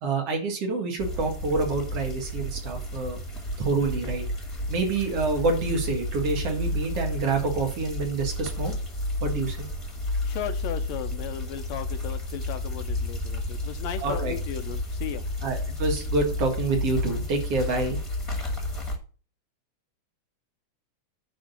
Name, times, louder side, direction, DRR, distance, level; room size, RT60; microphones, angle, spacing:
voice 1, 0.0-3.2 3.6-4.2 4.7-8.7 9.2-9.7 14.0-14.4 15.4-18.0, right 3 dB, 55° right, 2 dB, 2.8 m, -27 dB
sound 1, 1.0-19.0, left 1 dB, 15° left, 1.4 m, -31 dB
voice 2, 10.2-15.2, left 9 dB, 75° left, 10 dB, 1.8 m, -36 dB
10.0 x 3.8 x 7.1 m, 0.38 s
omnidirectional pair, 3.3 m